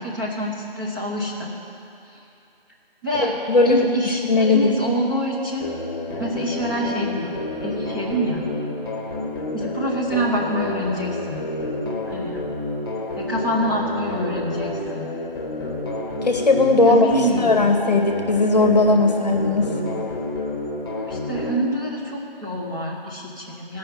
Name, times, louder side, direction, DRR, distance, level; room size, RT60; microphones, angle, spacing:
voice 1, 0.0-1.5 3.0-3.3 3.6-5.7 6.2-7.3 7.6-8.4 9.5-11.4 12.1-12.4 13.2-15.1 16.8-17.6 20.9-23.8, equal, 20° right, -5 dB, 0.9 m, -26 dB
voice 2, 3.2-4.7 16.2-19.7, left 3 dB, 45° left, 4 dB, 0.9 m, -18 dB
sound 1, 5.6-21.6, left 2 dB, 25° left, 1.2 m, -29 dB
13.0 x 5.6 x 7.9 m, 2.7 s
figure-of-eight pair, 170°, 30 cm